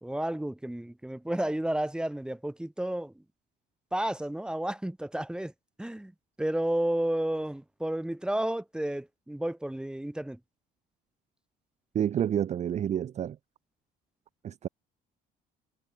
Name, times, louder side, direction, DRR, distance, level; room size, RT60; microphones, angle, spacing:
voice 1, 0.0-3.2 3.9-5.5 5.8-6.1 6.4-10.4, right 1 dB, 5° right, 3.5 m, -31 dB
voice 2, 11.9-13.4 14.4-14.7, right 9 dB, 40° right, 0.6 m, -29 dB
cardioid pair, 110°, 17 cm